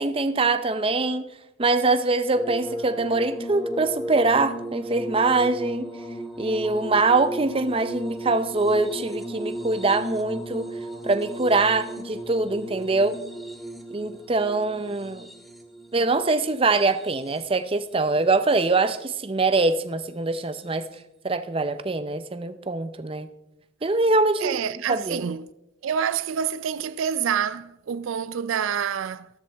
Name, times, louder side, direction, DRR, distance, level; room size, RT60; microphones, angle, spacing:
voice 1, 0.0-1.3 1.6-5.8 6.4-10.7 11.0-13.2 13.9-15.3 15.9-20.9 21.2-23.3 23.8-24.6 24.9-25.2, right 3 dB, 25° right, 0.6 m, -23 dB
sound 1, 2.3-17.6 18.5-19.2 20.6-20.7, right 1 dB, ahead, 1.0 m, -36 dB
voice 2, 24.4-25.5 25.8-29.3, right 8 dB, 75° right, 0.4 m, -27 dB
14.0 x 12.5 x 3.5 m
head